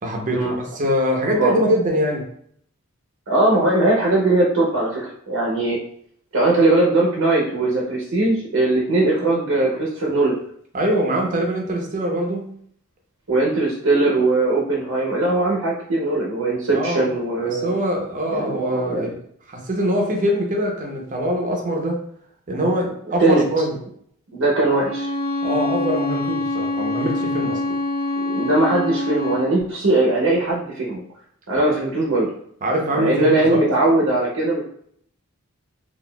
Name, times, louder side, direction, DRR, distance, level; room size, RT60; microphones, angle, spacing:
voice 1, 0.0-2.3 10.7-12.5 16.7-17.0 17.4-19.2 19.5-22.0 22.5-23.8 25.4-27.6 31.5-31.6 32.6-33.7, equal, 40° right, 1 dB, 0.6 m, -23 dB
voice 2, 1.3-1.7 3.3-5.8 6.3-10.4 13.3-17.8 18.3-19.1 23.2-23.4 24.3-25.1 28.2-31.0 31.5-32.3 32.9-34.6, right 2 dB, 70° right, -4 dB, 0.7 m, -20 dB
Bowed string instrument, 24.7-29.5, left 2 dB, 80° left, 1.1 m, -25 dB
4.0 x 2.4 x 2.2 m, 0.65 s
head